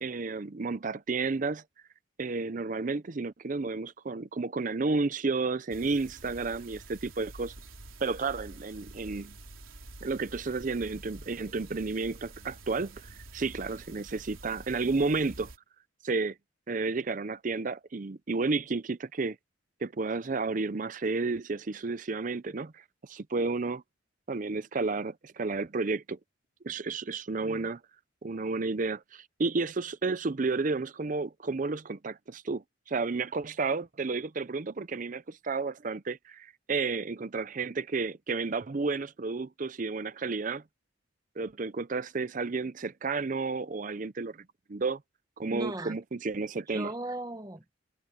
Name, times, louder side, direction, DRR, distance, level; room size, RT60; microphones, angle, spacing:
voice 1, 0.0-1.6 2.2-7.5 8.0-9.4 10.0-15.5 16.0-16.4 16.7-19.4 19.8-23.8 24.3-26.2 26.6-27.8 28.2-40.6 41.4-45.0 45.4-46.9, right 3 dB, 40° right, 0.5 m, -32 dB
sound 1, 5.7-15.6, right 2 dB, 85° right, 3.8 m, -48 dB
voice 2, 45.5-46.0 46.7-47.8, right 1 dB, 20° right, 1.2 m, -37 dB
head